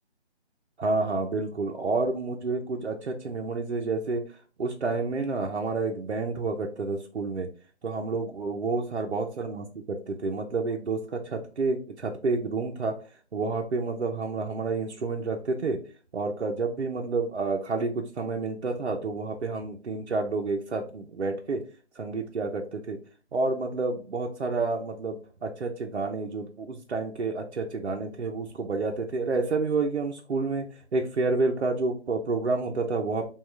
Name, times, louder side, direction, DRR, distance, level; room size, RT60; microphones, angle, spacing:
voice 1, 0.8-4.2 4.6-7.5 7.8-9.6 10.1-13.0 13.3-15.8 16.1-21.6 22.0-23.0 23.3-30.7 30.9-33.3, right 3 dB, 70° right, 1 dB, 0.8 m, -29 dB
5.4 x 2.5 x 3.2 m, 0.36 s
figure-of-eight pair, 165°, 34 cm